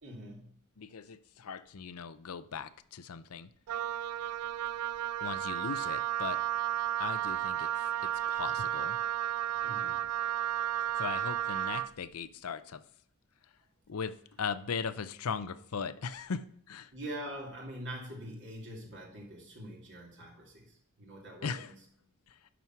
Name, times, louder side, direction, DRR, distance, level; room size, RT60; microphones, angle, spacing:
voice 1, 0.0-0.6 9.6-10.1 16.9-21.8, right 1 dB, 55° right, -2 dB, 2.7 m, -44 dB
voice 2, 0.8-3.5 5.2-6.4 7.0-7.7 8.3-9.0 11.0-12.8 13.9-14.1 14.4-16.9 21.4-21.7, left 6 dB, 70° left, 14 dB, 0.6 m, -38 dB
Wind instrument woodwind instrument, 3.7-11.9, right 11 dB, 90° right, 0.4 m, -33 dB
11.0 x 6.2 x 4.6 m, 0.66 s
head